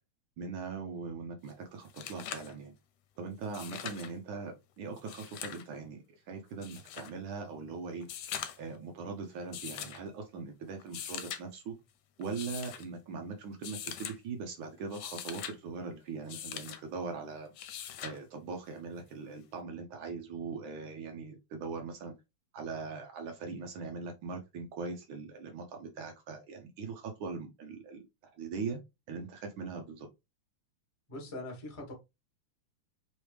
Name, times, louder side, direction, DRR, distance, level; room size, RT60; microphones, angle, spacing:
voice 1, 0.4-2.8 3.2-8.1 8.6-11.7 12.2-17.5 18.0-22.1 22.5-28.1 28.4-28.8 29.1-30.1, right 4 dB, 85° right, 1.1 m, -41 dB
sound 1, 1.5-1.6 1.8-2.5 3.4-4.1 5.0-5.7 6.6-7.1 8.0-8.7 9.5-10.0 10.8-11.4 12.2-12.8 13.6-14.2 14.8-15.6 16.3-16.8 17.6-18.2 19.6-19.7, left 10 dB, 70° left, 1.7 m, -42 dB
voice 2, 31.1-31.9, left 2 dB, 20° left, 0.9 m, -42 dB
4.9 x 3.1 x 3.3 m
omnidirectional pair, 3.4 m